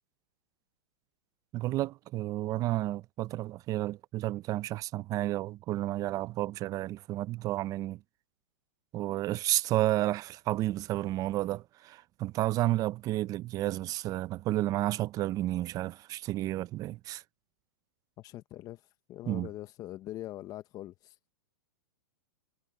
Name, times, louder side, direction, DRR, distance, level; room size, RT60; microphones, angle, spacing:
voice 1, 1.5-8.0 8.9-17.2 19.3-19.5, right 15 dB, 30° right, 0.8 m, -31 dB
voice 2, 18.2-18.8 19.1-21.2, left 15 dB, 30° left, 1.4 m, -42 dB
hypercardioid pair, 130°, 12 cm